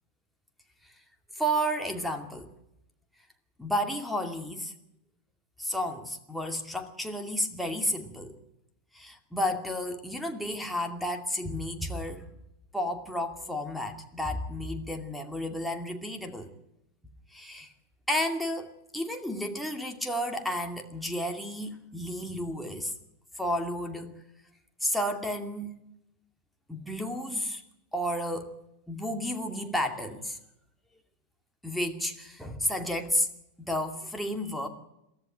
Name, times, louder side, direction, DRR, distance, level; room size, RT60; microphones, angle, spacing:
voice 1, 1.4-2.5 3.6-4.7 5.6-8.4 8.9-12.3 12.7-16.5 17.3-17.7 18.1-22.9 23.4-24.1 24.8-25.7 26.7-27.6 27.9-28.5 28.9-30.4 31.6-33.3 33.7-34.7, equal, ahead, 3 dB, 2.4 m, -32 dB
23.0 x 14.0 x 8.9 m, 0.86 s
figure-of-eight pair, 90°, 0 cm